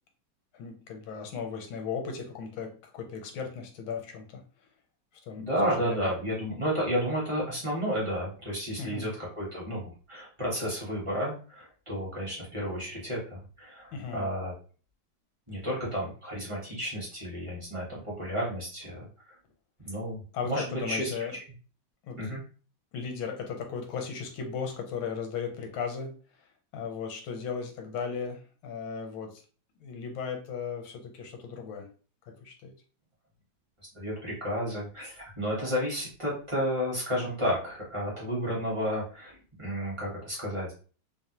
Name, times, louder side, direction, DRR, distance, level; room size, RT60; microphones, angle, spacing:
voice 1, 0.5-4.4 5.3-6.1 8.8-9.1 13.9-14.3 20.3-21.3 22.0-22.2 22.9-26.1 26.7-29.4 29.8-31.9 32.4-32.7, left 6 dB, 85° left, 3 dB, 1.5 m, -36 dB
voice 2, 5.4-14.5 15.5-19.0 19.8-21.1 22.2-22.4 33.9-40.7, equal, 30° right, -6 dB, 0.5 m, -32 dB
3.3 x 2.0 x 2.8 m, 0.38 s
omnidirectional pair, 2.2 m